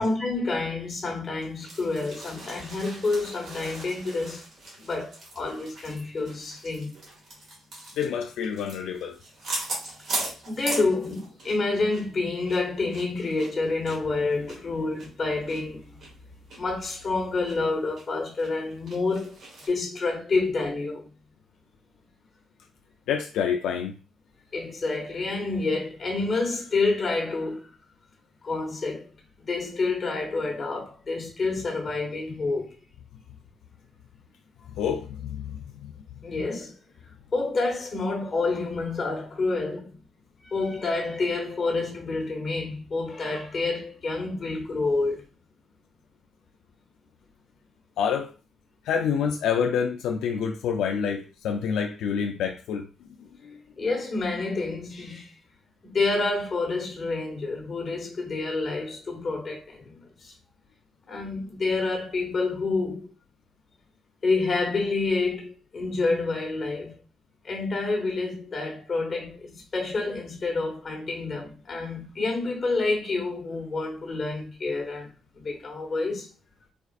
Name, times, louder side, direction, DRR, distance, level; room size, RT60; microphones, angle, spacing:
voice 1, 0.0-4.4 4.8-6.9 10.4-16.0 16.6-19.4 19.7-21.1 24.5-27.7 28.4-29.1 29.4-32.7 36.2-36.7 37.3-39.9 40.4-45.2 53.8-55.4 55.8-60.3 61.1-63.1 64.2-67.0 67.4-75.1 75.3-76.3, left 3 dB, 40° left, 1.3 m, -28 dB
sound 1, 1.4-11.7 11.9-12.1 12.4-15.6 16.0-16.1 16.5-16.6 17.0-17.6 18.0-18.1 18.4-19.7, right 2 dB, 60° right, 1.7 m, -38 dB
voice 2, 8.0-9.2 23.1-23.9 34.8-35.9 48.0-48.3 48.8-53.6, left 7 dB, 85° left, 0.3 m, -28 dB
4.4 x 2.4 x 2.4 m
cardioid pair, 90°, 0 cm